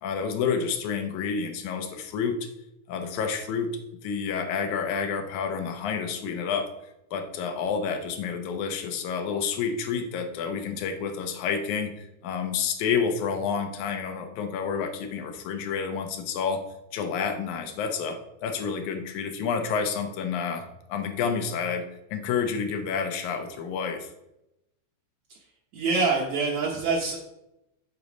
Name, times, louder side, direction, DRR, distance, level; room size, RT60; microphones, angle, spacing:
voice 1, 0.0-2.4 2.9-3.7 4.0-6.7 7.1-16.6 16.9-21.9 22.1-24.1, left 6 dB, 75° left, 6 dB, 2.2 m, -29 dB
voice 2, 25.7-27.2, right 4 dB, 70° right, -3 dB, 2.1 m, -25 dB
8.3 x 4.0 x 5.1 m, 0.88 s
omnidirectional pair, 3.5 m